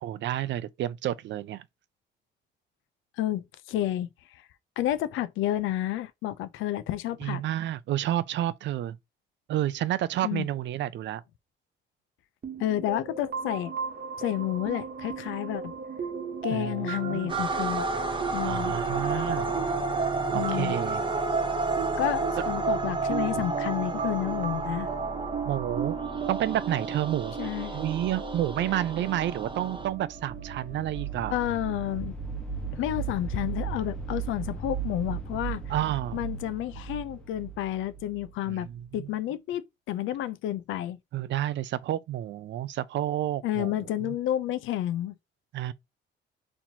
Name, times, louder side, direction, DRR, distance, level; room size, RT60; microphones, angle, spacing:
voice 1, 0.0-1.6 7.2-9.0 9.5-11.2 16.5-17.3 18.4-19.5 20.3-21.0 22.4-22.5 25.4-26.0 26.3-27.3 27.7-31.3 35.7-36.2 38.5-39.1 41.1-43.7 44.0-44.2 45.5-45.7, right 12 dB, 65° right, 0.4 m, -30 dB
voice 2, 3.2-4.4 4.8-7.4 10.2-10.5 12.6-13.7 14.2-15.7 16.4-17.9 18.3-18.8 20.3-20.8 22.0-24.9 27.4-27.8 31.3-32.2 32.7-35.6 36.1-39.6 39.9-41.0 43.4-45.1, left 12 dB, 85° left, 0.4 m, -30 dB
sound 1, 12.4-32.0, right 6 dB, 50° right, 1.1 m, -34 dB
sound 2, 17.3-29.9, right 2 dB, 25° right, 0.6 m, -33 dB
sound 3, 29.2-38.9, right 6 dB, 5° left, 1.0 m, -37 dB
4.2 x 2.9 x 2.7 m
cardioid pair, 90°, 20 cm